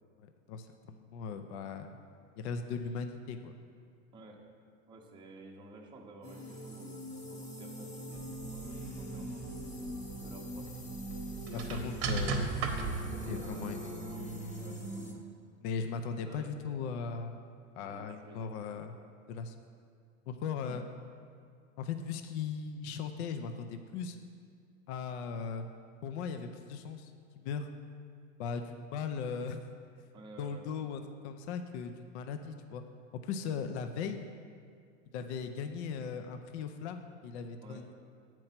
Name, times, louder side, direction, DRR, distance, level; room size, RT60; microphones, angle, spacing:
voice 1, 0.2-2.0 2.4-3.5 11.5-12.6 13.3-13.9 15.6-17.4 17.8-18.9 19.3-19.5 20.3-20.9 21.8-24.2 24.9-25.7 26.0-27.7 28.4-29.6 30.4-32.8 33.2-34.2 35.1-37.9, left 6 dB, 60° left, 7 dB, 0.6 m, -38 dB
voice 2, 4.9-9.7 10.2-10.7 13.3-14.3 14.6-15.0 16.2-16.9 17.8-18.8 20.6-20.8 30.1-30.6 33.4-33.5 37.6-37.8, right 2 dB, 10° right, -1 dB, 0.7 m, -53 dB
sound 1, 6.2-15.1, equal, 20° left, 0.8 m, -42 dB
sound 2, 7.0-15.2, right 7 dB, 65° right, 0.6 m, -54 dB
sound 3, 8.1-13.5, right 4 dB, 40° right, 0.9 m, -38 dB
7.7 x 4.5 x 5.8 m, 2.3 s
supercardioid pair, 140°, 38 cm